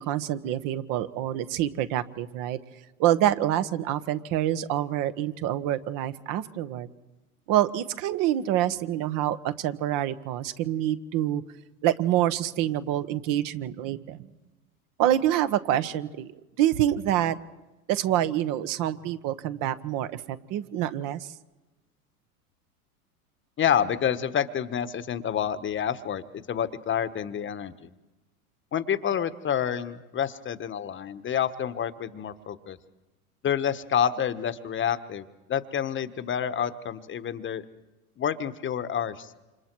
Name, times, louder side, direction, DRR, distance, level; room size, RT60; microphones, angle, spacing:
voice 1, 0.0-2.6 3.0-6.9 7.5-11.4 11.8-14.2 15.0-16.3 16.6-17.4 17.9-21.3, right 12 dB, 45° right, 11 dB, 1.4 m, -26 dB
voice 2, 23.6-26.2 26.5-27.9 28.7-32.8 33.4-37.6 38.2-39.3, left 8 dB, 25° left, 12 dB, 1.3 m, -28 dB
28.5 x 27.0 x 4.7 m, 1.1 s
hypercardioid pair, 90°, 44 cm